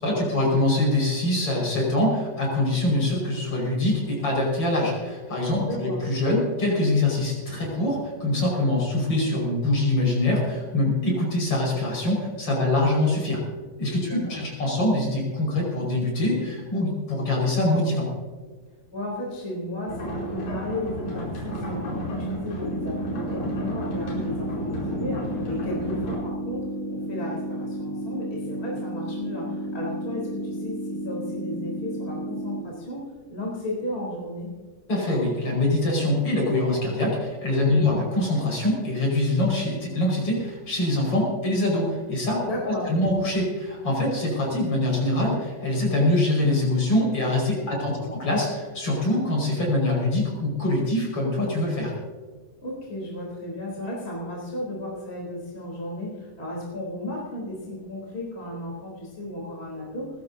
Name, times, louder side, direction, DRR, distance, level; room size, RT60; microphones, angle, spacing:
voice 1, 0.0-13.4 13.8-18.1 34.9-51.9, left 1 dB, 40° left, -2 dB, 6.3 m, -24 dB
voice 2, 5.7-6.0 14.0-14.4 18.9-34.5 37.7-38.0 42.4-42.9 47.7-48.1 52.6-60.2, left 1 dB, 15° left, -4 dB, 3.7 m, -34 dB
sound 1, 19.9-26.1, equal, 90° left, 6.5 m, -32 dB
sound 2, 22.6-32.6, equal, 60° left, 1.5 m, -32 dB
20.5 x 16.5 x 2.8 m, 1.4 s
omnidirectional pair, 4.0 m